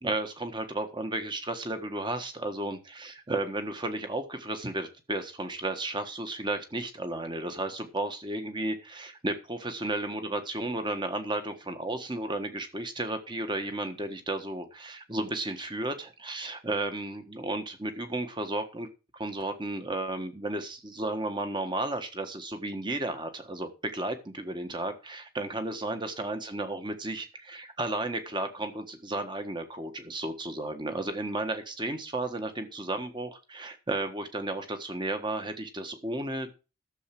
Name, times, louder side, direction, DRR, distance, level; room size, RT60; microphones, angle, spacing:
voice 1, 0.0-18.9 19.1-36.5, right 2 dB, 20° right, 8 dB, 1.4 m, -33 dB
12.5 x 7.3 x 6.0 m, 0.32 s
head